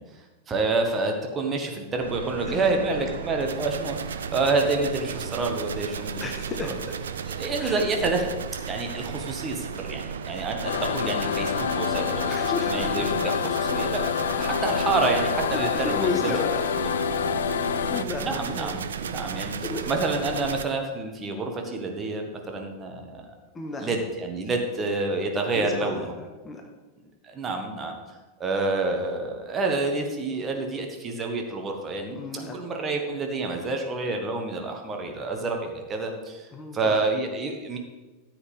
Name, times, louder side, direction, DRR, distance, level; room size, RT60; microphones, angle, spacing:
voice 1, 0.0-6.2 7.3-8.3 8.7-16.3 17.1-17.4 18.2-19.5 19.9-23.3 23.8-26.1 27.2-32.2 32.5-36.5 36.7-37.8, right 3 dB, 20° right, 3 dB, 1.5 m, -28 dB
sound 1, 2.0-20.6, right 7 dB, 65° right, 0.6 m, -34 dB
voice 2, 2.4-3.1 4.8-5.2 6.2-7.0 7.6-7.8 9.2-9.4 10.5-10.6 11.9-13.1 14.2-14.6 15.5-16.6 17.9-18.9 19.6-19.9 23.5-23.9 25.5-26.6 32.1-32.6 36.5-37.0, left 4 dB, 20° left, 3 dB, 1.3 m, -34 dB
sound 2, 10.6-18.0, left 8 dB, 60° left, 0.4 m, -27 dB
14.0 x 7.9 x 3.5 m, 1.2 s
figure-of-eight pair, 90°, 0 cm